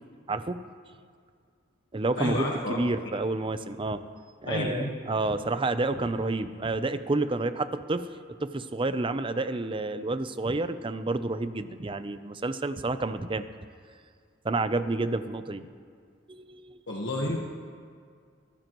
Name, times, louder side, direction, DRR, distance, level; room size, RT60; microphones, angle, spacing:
voice 1, 0.3-0.6 1.9-4.0 4.4-8.1 8.4-13.4 14.4-15.6 16.3-16.8, right 2 dB, 25° right, 11 dB, 0.5 m, -29 dB
voice 2, 2.2-2.8 4.4-4.9 16.9-17.4, left 1 dB, 65° left, -2 dB, 1.3 m, -30 dB
23.5 x 14.0 x 3.1 m, 2.1 s
head